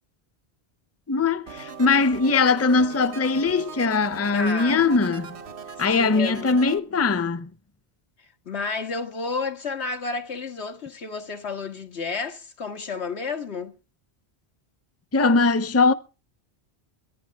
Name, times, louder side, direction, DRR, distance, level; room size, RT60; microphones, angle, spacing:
voice 1, 1.1-5.4 5.8-7.5 15.1-15.9, left 4 dB, 15° left, 0.6 m, -21 dB
sound 1, 1.5-6.8, right 6 dB, 80° right, 1.5 m, -39 dB
voice 2, 4.3-4.9 5.9-6.6 8.5-13.7, left 4 dB, 90° left, 1.9 m, -31 dB
23.0 x 10.5 x 3.5 m
omnidirectional pair, 1.1 m